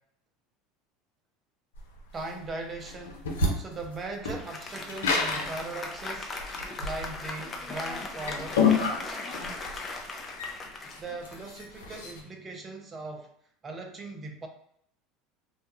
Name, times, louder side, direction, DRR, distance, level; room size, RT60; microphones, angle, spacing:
sound 1, 1.8-12.2, left 4 dB, 85° left, 0.5 m, -30 dB
voice 1, 2.1-3.2 3.6-6.3 6.8-9.2 11.0-13.3 13.6-14.5, right 3 dB, 30° right, 3 dB, 0.6 m, -39 dB
Applause, 4.2-11.9, left 3 dB, 30° left, 0.5 m, -39 dB
2.3 x 2.1 x 2.9 m, 0.69 s
hypercardioid pair, 85°, 0 cm